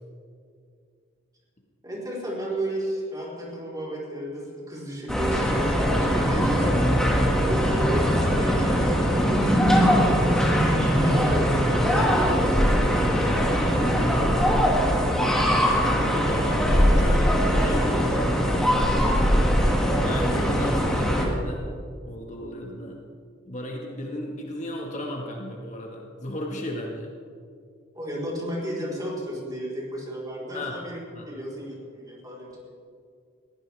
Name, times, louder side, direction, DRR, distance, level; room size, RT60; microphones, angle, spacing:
voice 1, 1.8-6.7 7.4-14.2 27.9-31.0 31.3-32.7, equal, 20° right, -5 dB, 4.3 m, -33 dB
sound 1, 5.1-21.3, equal, 5° left, 2.1 m, -21 dB
voice 2, 16.0-18.7 20.0-21.7 22.1-23.0 23.5-27.1 30.5-30.8 31.1-31.3, left 1 dB, 35° left, -1 dB, 1.8 m, -34 dB
21.5 x 16.0 x 3.5 m, 2.2 s
head